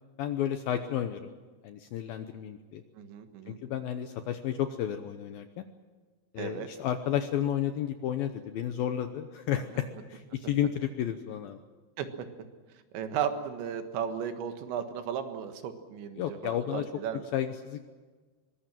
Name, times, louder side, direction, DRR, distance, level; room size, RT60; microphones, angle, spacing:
voice 1, 0.2-1.3 1.6-2.8 3.5-5.7 6.3-11.6 16.2-16.9 17.3-17.8, left 10 dB, 75° left, 8 dB, 2.3 m, -32 dB
voice 2, 3.0-3.6 6.4-6.7 12.0-12.3 12.9-17.2, right 8 dB, 85° right, 7 dB, 3.9 m, -35 dB
23.0 x 20.5 x 7.6 m, 1.4 s
omnidirectional pair, 5.1 m